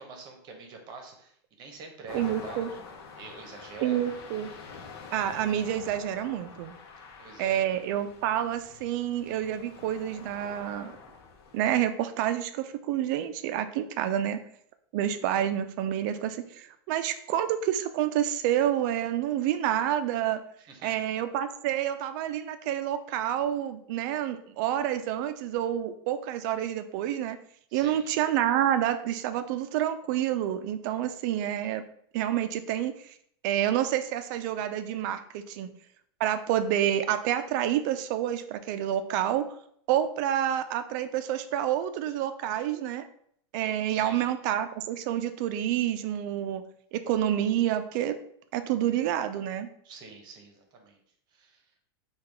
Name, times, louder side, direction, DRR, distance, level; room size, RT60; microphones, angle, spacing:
voice 1, 0.0-2.8 3.2-4.1 7.2-7.7 20.7-21.0 27.7-28.1 43.9-44.3 49.8-51.0 51.3-51.6, right 4 dB, 35° right, 3 dB, 0.9 m, -45 dB
sound 1, 2.1-11.8, left 5 dB, 70° left, 0.8 m, -46 dB
voice 2, 2.1-2.7 3.8-4.5 5.1-6.7 7.4-10.9 11.5-14.4 14.9-20.4 20.8-27.4 27.7-31.8 32.1-33.1 33.4-35.7 36.2-39.5 39.9-43.0 43.5-46.6 46.9-48.2 48.5-49.7, right 11 dB, 50° right, 10 dB, 0.4 m, -28 dB
4.7 x 2.3 x 3.4 m, 0.66 s
supercardioid pair, 150°, 13 cm